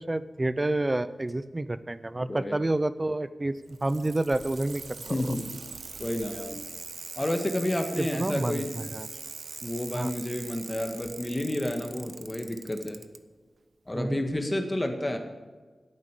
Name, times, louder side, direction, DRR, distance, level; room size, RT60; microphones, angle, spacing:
voice 1, 0.0-4.8 5.1-5.2 8.0-9.1 9.9-10.1 13.9-14.3, right 2 dB, 30° right, 14 dB, 0.5 m, -29 dB
voice 2, 2.3-2.6 5.1-5.5 6.0-6.6 7.2-8.7 9.6-13.0 13.9-15.2, left 1 dB, 25° left, 5 dB, 1.7 m, -30 dB
Bicycle, 3.6-13.2 14.3-14.4, right 4 dB, 75° right, 0.7 m, -42 dB
11.0 x 8.7 x 8.2 m, 1.4 s
wide cardioid pair, 70°, 0 cm